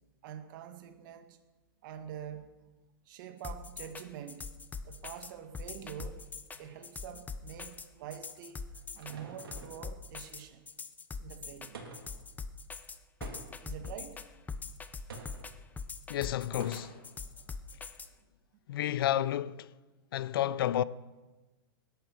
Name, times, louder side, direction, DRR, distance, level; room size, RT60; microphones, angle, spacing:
voice 1, 0.2-1.4 1.8-2.5 3.1-4.5 4.8-6.2 6.6-8.7 8.9-10.7 11.2-11.8 13.6-14.2 14.6-14.7 17.2-17.5, right 9 dB, 60° right, 2.0 m, -46 dB
sound 1, 3.4-18.1, left 4 dB, 15° left, 0.9 m, -42 dB
sound 2, 8.3-9.9 11.7-12.2 13.2-13.8 15.1-15.5 16.6-17.1, right 4 dB, 85° right, 3.7 m, -47 dB
voice 2, 16.1-17.0 18.7-19.7 20.1-20.8, left 12 dB, 70° left, 0.7 m, -31 dB
19.0 x 11.5 x 6.3 m
hypercardioid pair, 125°, 12 cm